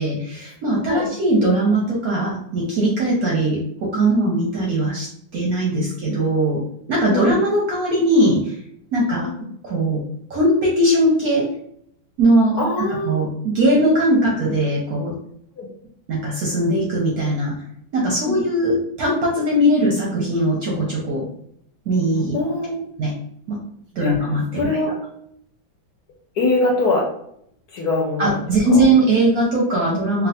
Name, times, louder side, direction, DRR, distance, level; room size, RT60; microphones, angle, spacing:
voice 1, 0.0-5.1 5.3-6.6 6.9-8.6 8.9-9.3 9.6-10.0 10.3-11.5 12.2-12.6 13.0-15.1 16.1-17.5 17.9-21.3 21.9-22.4 23.0-23.1 23.5-23.6 23.9-24.8 28.2-30.3, right 1 dB, 65° right, -3 dB, 0.9 m, -19 dB
voice 2, 12.6-13.2 15.6-15.7 18.3-18.4 22.3-22.8 24.0-24.1 24.5-24.9 26.4-27.1 27.7-28.4 28.7-28.9, left 2 dB, 70° left, -1 dB, 1.0 m, -22 dB
3.1 x 2.4 x 2.7 m, 0.70 s
omnidirectional pair, 2.1 m